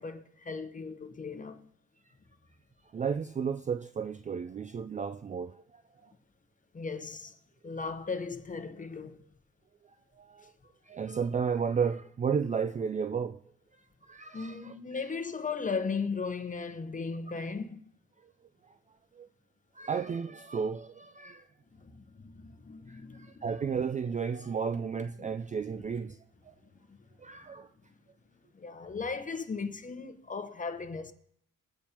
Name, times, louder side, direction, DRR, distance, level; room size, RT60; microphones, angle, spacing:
voice 1, 0.0-1.7 6.7-7.4 7.6-9.2 14.3-17.8 21.7-23.4 25.2-25.3 26.7-27.0 27.4-27.5 28.5-31.1, left 4 dB, 25° left, 1.0 m, -37 dB
voice 2, 2.9-5.6 6.0-6.1 10.2-10.5 10.9-13.4 14.1-14.7 19.2-19.3 19.8-21.4 22.9-26.2 26.5-26.6 27.2-27.7, right 6 dB, 25° right, 0.3 m, -33 dB
21.5 x 8.3 x 2.9 m
cardioid pair, 90°, 30 cm